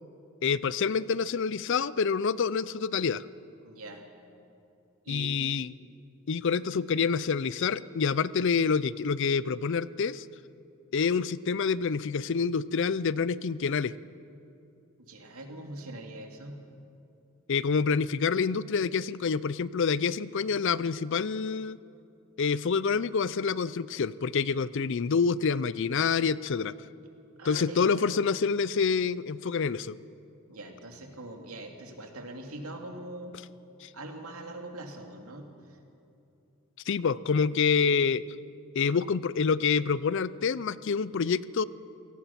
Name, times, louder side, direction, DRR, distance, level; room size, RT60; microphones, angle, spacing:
voice 1, 0.4-3.3 5.1-5.7 6.3-10.3 10.9-13.9 17.5-21.8 22.4-26.7 27.4-30.0 33.8-33.9 36.9-38.2 38.7-41.6, left 5 dB, 55° left, 18 dB, 0.5 m, -27 dB
voice 2, 3.6-4.1 5.0-5.4 15.0-16.6 27.4-28.2 30.5-33.4 33.9-35.8, right 1 dB, 80° right, 3 dB, 2.6 m, -42 dB
28.5 x 17.5 x 5.9 m, 2.7 s
head